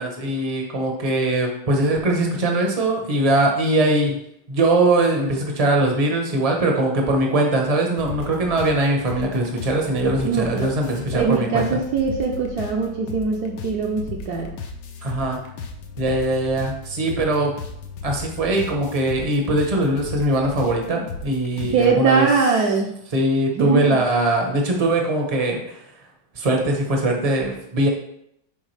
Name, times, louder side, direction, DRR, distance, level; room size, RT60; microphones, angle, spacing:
voice 1, 0.0-4.2 4.5-11.8 15.0-15.4 16.0-17.5 18.0-22.3 23.1-25.8 26.3-27.9, right 1 dB, 35° right, 1 dB, 0.6 m, -21 dB
sound 1, 8.0-21.9, left 4 dB, 75° left, 1.5 m, -36 dB
voice 2, 10.2-10.7 11.1-14.5 21.7-22.9 23.6-24.0, right 4 dB, 65° right, 0 dB, 1.0 m, -22 dB
7.2 x 4.6 x 3.3 m, 0.75 s
omnidirectional pair, 2.2 m